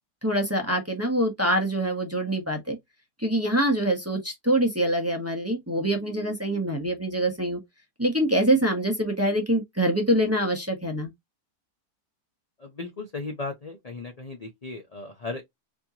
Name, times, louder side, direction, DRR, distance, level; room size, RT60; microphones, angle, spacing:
voice 1, 0.2-2.8 3.2-7.6 8.0-11.1, right 1 dB, 10° right, 0.8 m, -25 dB
voice 2, 12.6-15.4, left 3 dB, 45° left, 0.5 m, -36 dB
4.4 x 2.9 x 2.8 m
omnidirectional pair, 1.7 m